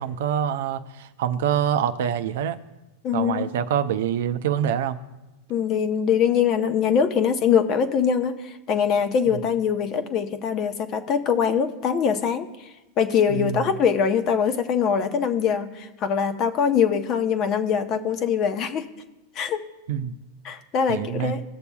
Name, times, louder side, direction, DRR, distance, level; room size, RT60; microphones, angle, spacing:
voice 1, 0.0-2.6 3.1-5.0 9.3-9.4 13.3-13.6 19.9-20.2 20.9-21.4, right 9 dB, 70° right, 10 dB, 0.5 m, -25 dB
voice 2, 3.0-3.5 5.5-12.7 13.0-18.9 19.4-19.6 20.4-21.4, left 7 dB, 40° left, 9 dB, 0.8 m, -23 dB
16.5 x 6.9 x 2.3 m, 1.0 s
hypercardioid pair, 120°, 0 cm